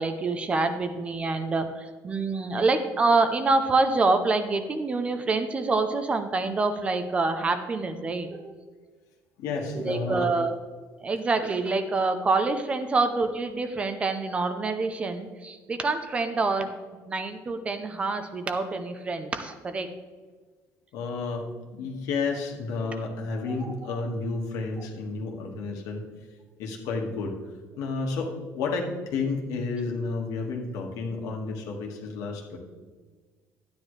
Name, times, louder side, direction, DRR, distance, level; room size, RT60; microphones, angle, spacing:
voice 1, 0.0-8.6 9.7-10.5 11.0-16.7 17.1-19.9 23.5-23.7, right 3 dB, 20° right, 8 dB, 0.6 m, -26 dB
voice 2, 9.4-10.3 20.9-26.0 26.6-27.3 27.8-32.6, left 4 dB, 70° left, 1 dB, 1.9 m, -31 dB
13.0 x 9.7 x 3.3 m, 1.4 s
cardioid pair, 175°, 6 cm